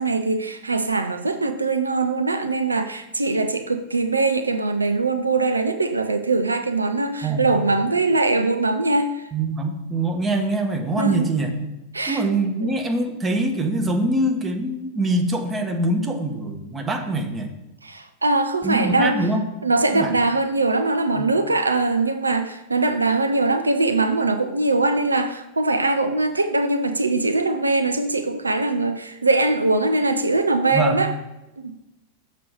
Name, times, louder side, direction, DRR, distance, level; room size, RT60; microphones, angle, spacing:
voice 1, 0.0-9.3 11.0-11.3 11.9-12.7 17.8-19.3 19.6-31.1 31.6-31.7, right 3 dB, 80° right, 0.4 m, -22 dB
voice 2, 9.3-11.5 12.1-17.5 18.6-19.4 19.9-20.1 21.2-21.3 30.7-31.0, right 2 dB, 15° right, 1.2 m, -23 dB
6.7 x 4.9 x 5.7 m
figure-of-eight pair, 90°, 0 cm